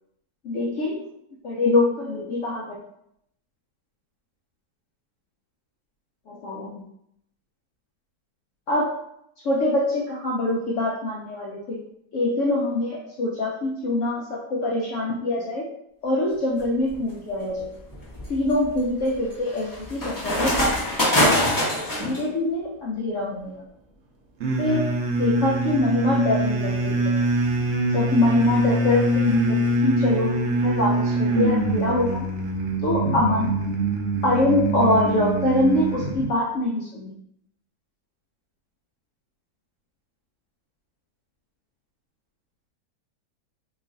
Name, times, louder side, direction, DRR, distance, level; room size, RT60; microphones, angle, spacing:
voice 1, 0.4-1.1 1.4-2.8 6.3-6.8 8.7-9.0 9.4-11.8 12.1-15.7 16.0-17.8 18.3-21.1 22.0-23.6 24.6-24.9 25.2-27.1 27.9-32.3 32.8-33.5 34.2-37.1, left 2 dB, 70° left, -3 dB, 0.7 m, -24 dB
sound 1, 16.6-17.0 17.6-22.2, left 1 dB, 25° left, 0.4 m, -24 dB
sound 2, 24.4-36.3, right 1 dB, 65° right, 0.7 m, -24 dB
3.0 x 2.3 x 3.7 m, 0.75 s
omnidirectional pair, 1.8 m